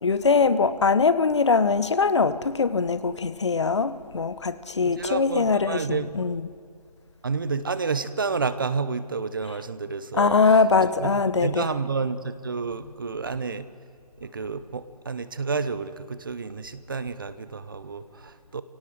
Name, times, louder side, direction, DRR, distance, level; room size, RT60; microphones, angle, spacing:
voice 1, 0.0-5.8 6.2-6.4 10.2-11.6, left 4 dB, 45° left, 0.9 m, -22 dB
voice 2, 4.8-6.2 7.2-10.6 11.0-13.7 14.2-18.6, right 4 dB, 30° right, 0.8 m, -30 dB
24.0 x 17.5 x 7.9 m
figure-of-eight pair, 165°, 21 cm